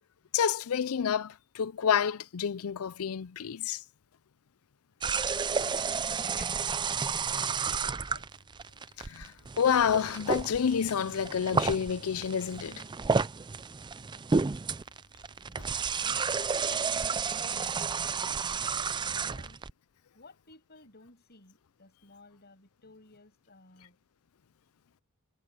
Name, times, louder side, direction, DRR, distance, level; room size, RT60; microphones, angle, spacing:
voice 1, 0.3-3.8 9.0-12.8, left 7 dB, 75° left, 0.5 m, -29 dB
voice 2, 5.0-8.3 16.0-18.7 19.0-19.6 20.1-24.0, left 2 dB, 50° left, 6.9 m, -56 dB
sound 1, 5.0-19.7, right 5 dB, 20° right, 0.4 m, -31 dB
head